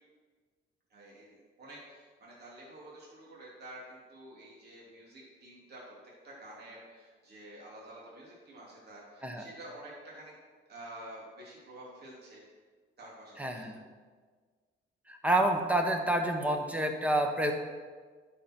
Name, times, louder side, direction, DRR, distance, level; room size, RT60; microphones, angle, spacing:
voice 1, 0.9-5.8 6.2-10.3 10.7-12.4 13.0-13.7, right 1 dB, 55° right, -5 dB, 3.0 m, -49 dB
voice 2, 13.4-13.8 15.1-17.5, right 1 dB, 5° right, 3 dB, 1.2 m, -28 dB
11.0 x 5.7 x 4.6 m, 1.5 s
cardioid pair, 90°, 20 cm